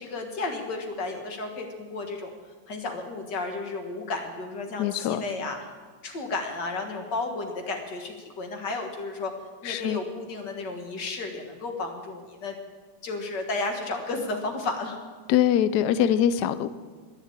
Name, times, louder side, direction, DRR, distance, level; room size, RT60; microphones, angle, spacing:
voice 1, 0.0-2.3 2.7-5.7 6.0-9.3 9.6-12.6 13.0-15.0, left 3 dB, 55° left, 4 dB, 2.2 m, -33 dB
voice 2, 4.8-5.3 9.6-10.0 15.3-16.7, left 10 dB, 80° left, 14 dB, 0.9 m, -23 dB
11.0 x 10.5 x 8.8 m, 1.4 s
omnidirectional pair, 2.4 m